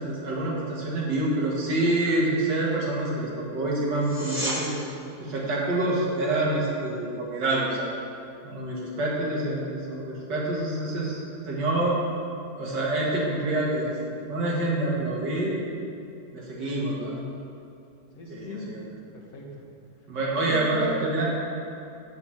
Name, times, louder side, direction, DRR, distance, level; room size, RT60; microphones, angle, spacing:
voice 1, 0.0-4.8 5.2-7.9 8.4-12.0 12.6-13.9 14.2-15.6 16.3-17.2 18.3-18.8 20.1-21.2, right 2 dB, 85° right, -4 dB, 2.4 m, -27 dB
sound 1, 4.0-4.6 15.9-16.0, equal, 15° right, 1.6 m, -31 dB
voice 2, 18.2-19.6 20.3-21.2, equal, 65° left, -1 dB, 1.7 m, -36 dB
8.2 x 5.2 x 7.2 m, 2.6 s
omnidirectional pair, 1.8 m